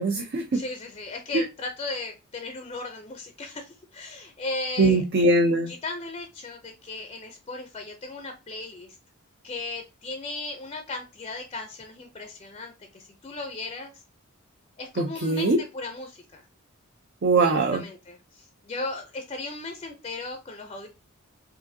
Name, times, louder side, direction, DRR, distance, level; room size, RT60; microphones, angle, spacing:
voice 1, 0.0-0.6 1.3-1.4 4.8-5.7 15.0-15.6 17.2-17.8, right 2 dB, 50° right, 3 dB, 0.5 m, -21 dB
voice 2, 0.5-5.0 5.7-9.0 9.4-14.0 14.8-16.4 17.4-20.9, left 3 dB, 25° left, 4 dB, 0.5 m, -36 dB
4.8 x 2.6 x 2.7 m, 0.27 s
head